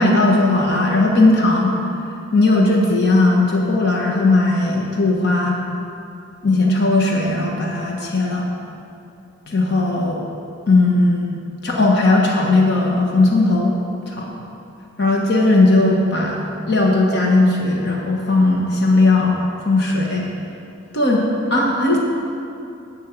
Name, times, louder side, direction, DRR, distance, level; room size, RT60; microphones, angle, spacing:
voice 1, 0.0-1.7 2.3-5.6 6.4-8.5 9.5-10.2 10.7-13.7 14.1-14.3 15.0-16.4 16.7-19.4 19.6-20.3 20.9-21.2 21.5-22.0, left 2 dB, 55° left, -1 dB, 1.3 m, -17 dB
12.5 x 4.7 x 8.4 m, 2.7 s
head